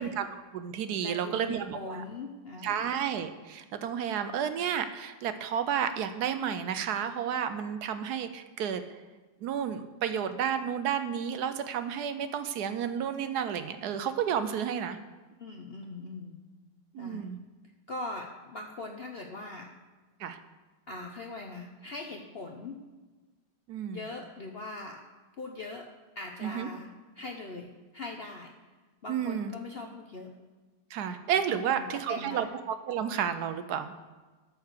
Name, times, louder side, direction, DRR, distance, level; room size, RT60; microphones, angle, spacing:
voice 1, 0.0-2.0 2.6-8.8 9.4-15.0 16.9-17.4 20.2-20.4 23.7-24.0 26.4-26.7 29.1-29.5 30.9-34.1, right 8 dB, 70° right, 10 dB, 1.2 m, -31 dB
voice 2, 1.0-2.9 15.4-16.4 17.0-17.3 17.9-19.7 20.9-22.8 23.9-25.0 25.4-25.9 26.2-26.9 27.1-28.5 29.0-30.3 31.5-32.5, left 3 dB, 45° left, 1 dB, 0.8 m, -41 dB
13.0 x 4.7 x 6.6 m, 1.3 s
omnidirectional pair, 1.8 m